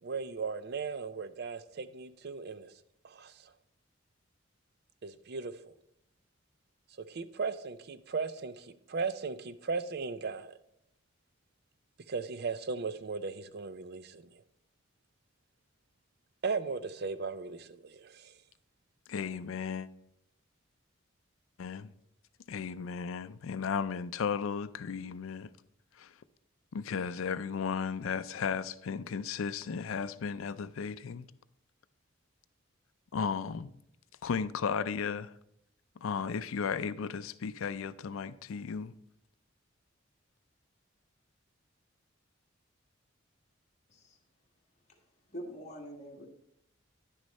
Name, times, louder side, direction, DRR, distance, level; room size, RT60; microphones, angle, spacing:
voice 1, 0.0-2.7 3.0-3.3 5.0-5.7 7.1-10.5 12.1-14.3 16.4-18.3, right 4 dB, 50° right, 0.5 m, -37 dB
voice 2, 19.1-19.9 21.6-21.9 22.5-25.5 26.0-26.1 26.7-31.3 33.1-33.7 34.2-35.3 36.0-38.9, left 6 dB, 80° left, 0.4 m, -35 dB
voice 3, 45.3-46.3, equal, 35° left, 1.5 m, -44 dB
10.0 x 6.4 x 4.1 m
head